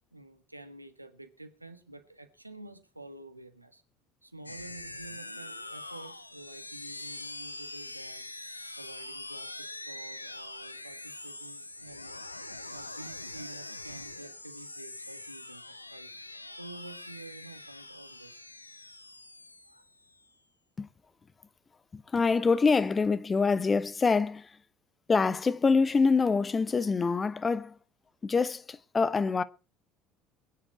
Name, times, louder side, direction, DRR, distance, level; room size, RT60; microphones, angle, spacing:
voice 1, 0.1-3.8 4.2-8.3 8.8-12.2 12.7-18.4 19.6-19.8, right 2 dB, 90° right, 1.4 m, -49 dB
sound 1, 4.5-20.3, left 2 dB, 85° left, 0.8 m, -43 dB
voice 2, 21.9-24.5 25.1-27.8 28.2-29.4, left 4 dB, 25° left, 0.9 m, -25 dB
20.5 x 10.0 x 4.7 m
figure-of-eight pair, 60°, 0 cm